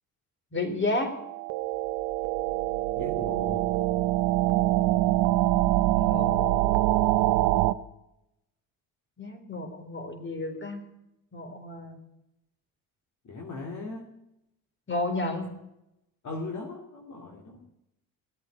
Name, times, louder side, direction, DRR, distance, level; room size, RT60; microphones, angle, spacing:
voice 1, 0.5-1.2 5.9-6.7 9.2-10.8 11.3-12.0 14.9-15.5, left 2 dB, 30° left, 7 dB, 4.0 m, -32 dB
sound 1, 1.1-7.7, right 15 dB, 85° right, 0.8 m, -24 dB
voice 2, 3.0-3.7 13.2-14.1 16.2-17.6, left 3 dB, 45° left, 1 dB, 2.9 m, -38 dB
18.5 x 8.6 x 8.1 m, 0.87 s
supercardioid pair, 80°, 39 cm